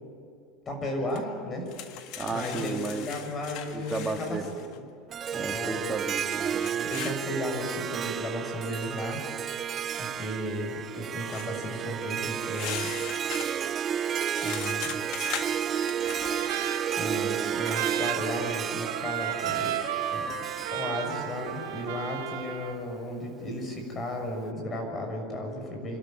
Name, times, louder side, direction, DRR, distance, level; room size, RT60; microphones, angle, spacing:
voice 1, 0.7-1.7 2.0-4.7 5.3-5.8 6.8-9.2 10.0-12.9 14.4-15.3 16.9-19.7 20.1-20.5 20.7-26.0, left 1 dB, 25° left, 3 dB, 6.5 m, -34 dB
sound 1, 1.2-1.3 1.7-4.8 6.3-7.2 11.3-11.5 12.4-16.5, left 10 dB, 55° left, 1.7 m, -40 dB
voice 2, 2.2-3.1 3.7-4.5 5.3-6.9, right 3 dB, 15° right, 3 dB, 2.1 m, -33 dB
Harp, 5.1-22.4, right 8 dB, 35° right, 0.6 m, -32 dB
Trumpet, 16.1-22.8, right 10 dB, 75° right, 1.8 m, -34 dB
26.0 x 13.0 x 9.1 m, 2.3 s
supercardioid pair, 120°, 0 cm